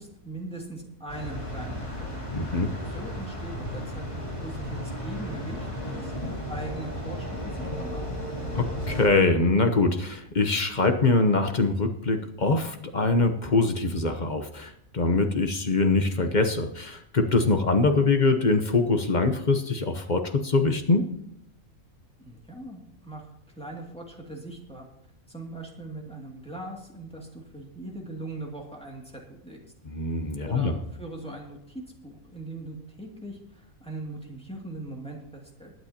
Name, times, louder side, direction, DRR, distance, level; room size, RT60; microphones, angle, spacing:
voice 1, 0.0-2.2 2.8-8.1 22.2-23.3 23.6-24.9 25.3-29.6 30.5-35.7, right 1 dB, 5° left, -1 dB, 2.4 m, -40 dB
sound 1, 1.1-9.1, equal, 20° left, 3.3 m, -34 dB
voice 2, 2.3-2.7 8.5-21.1 29.8-30.8, left 3 dB, 35° left, 6 dB, 0.9 m, -23 dB
21.0 x 9.3 x 2.9 m, 0.79 s
omnidirectional pair, 1.4 m